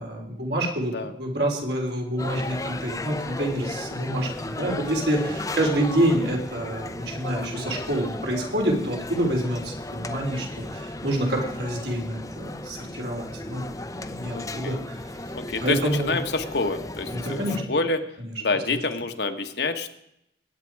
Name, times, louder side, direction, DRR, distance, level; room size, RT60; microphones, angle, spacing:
voice 1, 0.0-13.6 13.9-15.0 15.6-16.1 17.1-17.8 18.2-18.3 18.7-18.8, right 1 dB, 65° right, 0 dB, 3.7 m, -27 dB
sound 1, 2.2-17.6, left 2 dB, 20° left, 0.8 m, -35 dB
voice 2, 14.3-14.8 15.3-17.4 17.7-18.0 18.4-19.9, left 3 dB, 65° left, 6 dB, 1.4 m, -27 dB
21.5 x 9.2 x 4.8 m, 0.78 s
head